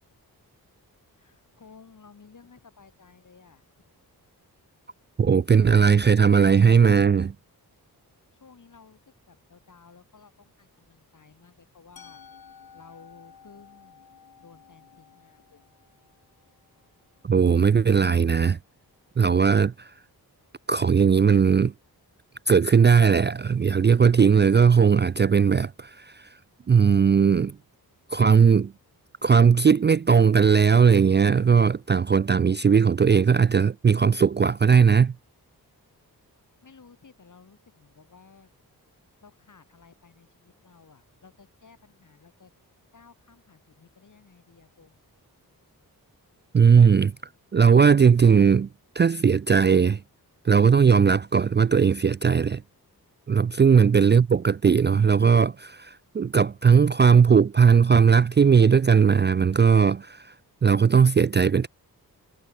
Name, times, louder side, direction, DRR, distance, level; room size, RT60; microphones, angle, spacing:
voice 1, 1.1-3.6 8.3-9.0 9.3-12.2 12.7-14.0 14.4-15.7 36.6-38.5 39.2-42.5 42.9-45.1, left 5 dB, 55° left, 4.4 m, -54 dB
voice 2, 5.2-7.3 17.2-18.6 19.2-19.9 20.7-21.7 22.5-26.3 26.7-27.6 28.1-28.7 29.2-35.1 46.5-47.1 47.5-48.7 49.0-50.0 50.4-52.6 53.3-60.3 60.6-61.7, right 6 dB, 30° right, 0.4 m, -18 dB
Musical instrument, 12.0-17.9, left 7 dB, 70° left, 3.2 m, -53 dB
wide cardioid pair, 100°, 37 cm